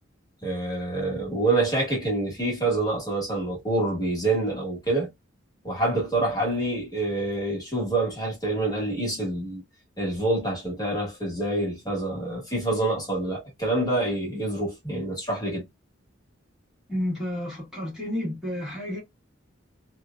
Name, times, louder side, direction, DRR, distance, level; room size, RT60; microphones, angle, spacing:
voice 1, 0.4-5.1 5.6-9.6 10.0-15.6, right 2 dB, 20° left, 1.4 m, -26 dB
voice 2, 16.9-19.0, left 1 dB, 5° right, 1.2 m, -30 dB
2.9 x 2.4 x 2.2 m
head